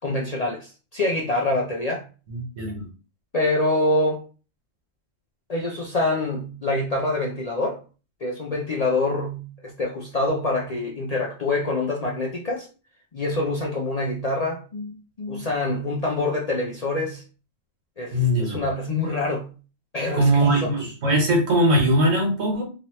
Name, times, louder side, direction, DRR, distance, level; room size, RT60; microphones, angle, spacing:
voice 1, 0.0-2.0 3.3-4.3 5.5-7.8 8.2-12.7 13.1-17.2 18.0-19.5 19.9-20.9, left 2 dB, 55° left, 0.4 m, -26 dB
voice 2, 2.3-2.8 18.1-18.6 20.1-22.6, right 1 dB, 85° right, 1.6 m, -21 dB
2.9 x 2.8 x 2.9 m
omnidirectional pair, 1.3 m